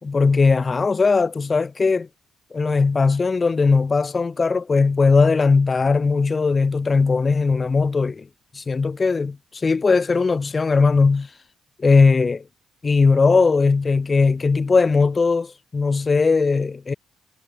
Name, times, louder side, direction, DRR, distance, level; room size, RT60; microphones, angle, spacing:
voice 1, 0.0-2.1 2.5-8.3 8.5-11.3 11.8-12.4 12.8-16.9, left 4 dB, 30° left, 3.8 m, -19 dB
cardioid pair, 90°, 0 cm